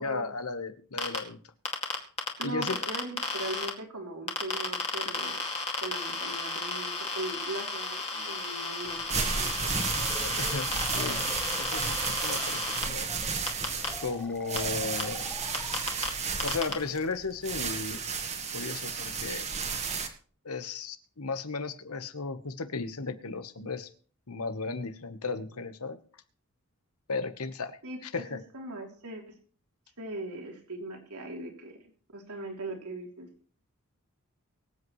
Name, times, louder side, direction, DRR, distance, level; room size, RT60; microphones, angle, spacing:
voice 1, 0.0-1.4 2.4-2.9 10.2-13.1 14.0-15.4 16.4-18.0 18.5-19.5 20.4-23.9 24.3-26.0 27.1-28.4, left 4 dB, 80° left, 10 dB, 1.2 m, -35 dB
sound 1, 1.0-1.2 1.7-3.7 4.3-12.8 13.5-13.9 14.6-14.7 15.0-15.1 15.5-16.1 16.4-16.7, left 3 dB, 30° left, 2.2 m, -33 dB
voice 2, 2.4-5.4 5.8-9.8 27.8-29.2 30.0-31.7 32.1-33.3, right 2 dB, 90° right, 1 dB, 3.3 m, -39 dB
sound 2, 8.9-20.1, right 5 dB, 30° right, 1.5 m, -33 dB
sound 3, 9.9-16.4, left 1 dB, 5° left, 1.0 m, -46 dB
24.0 x 8.1 x 3.2 m, 0.44 s
head